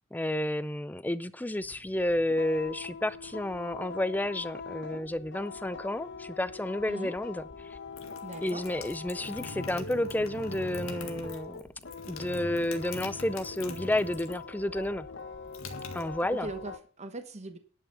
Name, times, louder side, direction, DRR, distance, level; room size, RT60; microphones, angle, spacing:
voice 1, 0.1-7.4 8.4-11.6 12.1-15.1 15.9-16.5, left 1 dB, 10° left, 0.4 m, -31 dB
sound 1, 1.6-16.8, left 5 dB, 55° left, 1.0 m, -43 dB
sound 2, 7.7-14.5 14.8-16.6, left 2 dB, 80° left, 1.8 m, -43 dB
voice 2, 8.2-8.6 16.3-17.6, right 2 dB, 30° right, 1.0 m, -40 dB
11.0 x 5.8 x 6.7 m
head